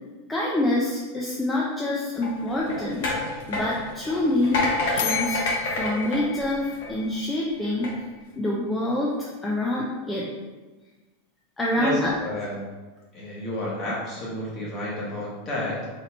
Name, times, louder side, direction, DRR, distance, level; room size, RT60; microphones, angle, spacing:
voice 1, 0.3-4.6 4.9-7.9 8.4-10.3 11.6-12.1, left 1 dB, 10° left, -4 dB, 0.4 m, -26 dB
sound 1, 2.1-7.1 7.6-7.9, left 2 dB, 65° left, 1.2 m, -29 dB
sound 2, 5.0-7.7, left 8 dB, 90° left, 0.3 m, -33 dB
voice 2, 11.8-12.6 13.1-15.9, left 1 dB, 30° left, -4 dB, 1.2 m, -31 dB
4.3 x 2.7 x 4.2 m, 1.2 s
supercardioid pair, 175°, 0 cm